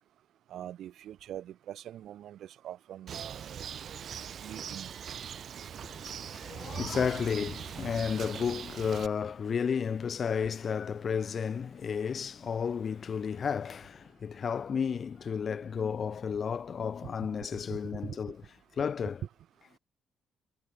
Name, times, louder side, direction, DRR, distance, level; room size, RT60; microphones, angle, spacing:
voice 1, 0.5-3.5 4.4-4.9 17.0-17.1 17.7-18.2, right 11 dB, 75° right, 0.9 m, -43 dB
Bird, 3.1-9.1, right 8 dB, 60° right, 1.6 m, -41 dB
voice 2, 5.8-18.5 18.8-19.2, left 6 dB, 50° left, 0.9 m, -32 dB
cardioid pair, 90°, 0 cm